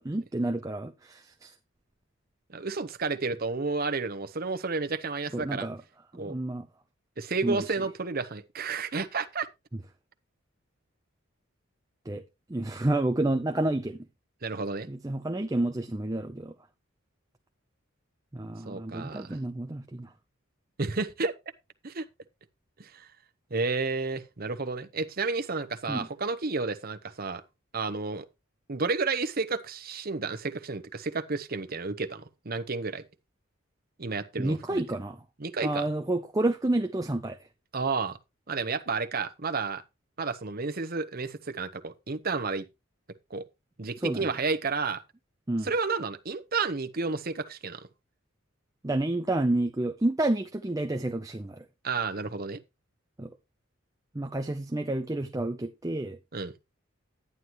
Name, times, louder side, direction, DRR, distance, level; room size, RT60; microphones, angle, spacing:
voice 1, 0.0-1.5 5.3-5.8 6.1-6.7 7.4-7.8 12.1-12.2 12.5-14.0 14.9-16.5 18.3-20.1 25.9-26.1 34.4-35.2 35.6-37.4 44.0-44.2 45.5-45.7 48.8-51.6 53.2-53.3 54.1-56.2, right 2 dB, 15° right, 0.6 m, -29 dB
voice 2, 2.5-5.7 6.1-6.3 7.2-9.5 14.4-14.9 18.7-19.4 20.8-21.3 21.8-22.0 22.8-23.1 23.5-27.4 27.7-28.2 28.7-33.0 34.0-34.8 35.4-35.9 37.7-38.2 38.5-39.8 40.2-42.6 43.3-43.4 43.8-45.0 45.6-47.8 51.8-52.6 56.3-56.5, right 4 dB, 45° right, 0.9 m, -31 dB
11.0 x 9.7 x 3.0 m
head